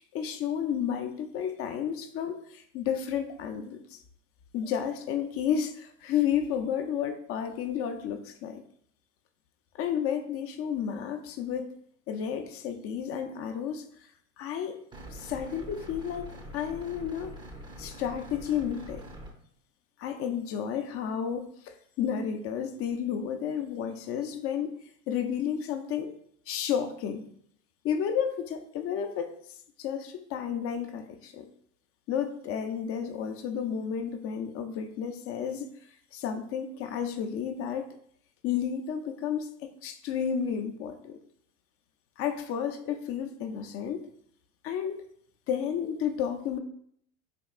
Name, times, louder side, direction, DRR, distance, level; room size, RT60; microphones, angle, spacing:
voice 1, 0.0-4.0 4.5-8.6 9.7-11.8 12.1-13.8 14.4-14.8 15.1-17.3 17.8-19.0 20.0-24.7 25.1-26.1 26.5-27.2 27.8-29.3 29.8-31.5 32.1-35.7 36.1-38.0 38.4-41.2 42.2-44.1 44.6-45.0 45.5-46.6, left 8 dB, 40° left, 0.4 m, -32 dB
sound 1, 14.9-19.3, right 1 dB, 10° right, 0.5 m, -44 dB
4.3 x 2.8 x 2.4 m
hypercardioid pair, 95°, 38 cm